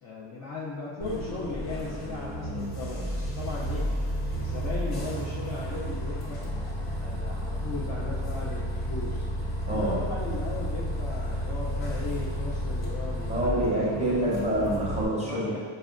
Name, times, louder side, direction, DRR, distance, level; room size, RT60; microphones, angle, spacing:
voice 1, 0.0-3.8 4.3-6.4 7.0-9.3 9.7-14.1 15.2-15.6, left 3 dB, 35° left, -6 dB, 0.5 m, -37 dB
Bus, 1.0-15.0, equal, 90° left, 1.0 m, -32 dB
voice 2, 9.7-10.0 13.3-15.6, right 1 dB, 15° right, -6 dB, 0.6 m, -27 dB
4.8 x 2.2 x 2.4 m, 1.5 s
cardioid pair, 135°, 48 cm